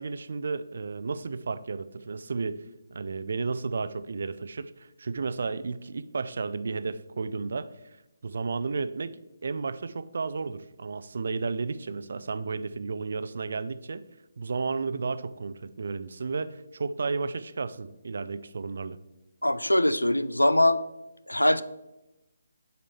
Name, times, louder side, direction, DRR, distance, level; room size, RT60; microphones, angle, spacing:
voice 1, 0.0-2.6 2.9-7.7 8.2-14.0 14.4-19.0, right 4 dB, 50° right, 13 dB, 0.4 m, -33 dB
voice 2, 19.4-20.8 21.3-21.6, left 1 dB, 85° left, 14 dB, 0.4 m, -22 dB
7.2 x 4.1 x 4.3 m, 0.96 s
figure-of-eight pair, 145°, 0 cm